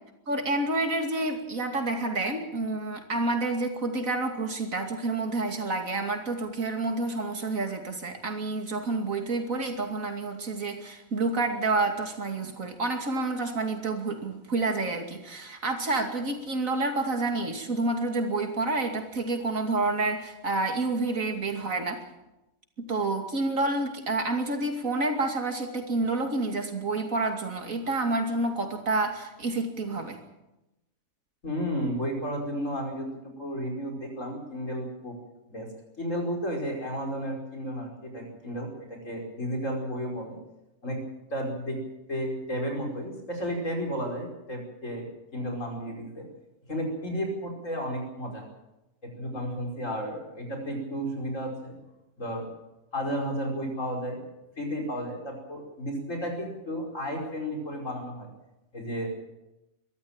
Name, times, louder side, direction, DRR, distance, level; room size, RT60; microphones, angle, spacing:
voice 1, 0.3-22.0 22.8-30.2, right 2 dB, 75° right, 4 dB, 3.0 m, -29 dB
voice 2, 31.4-35.2 35.5-35.7 36.0-40.4 40.8-41.0 41.3-41.8 42.1-46.3 46.7-48.4 49.0-51.8 52.2-52.5 52.9-54.2 54.6-58.3 58.7-59.1, equal, 65° left, 1 dB, 5.6 m, -33 dB
23.0 x 14.0 x 9.0 m, 0.96 s
omnidirectional pair, 1.4 m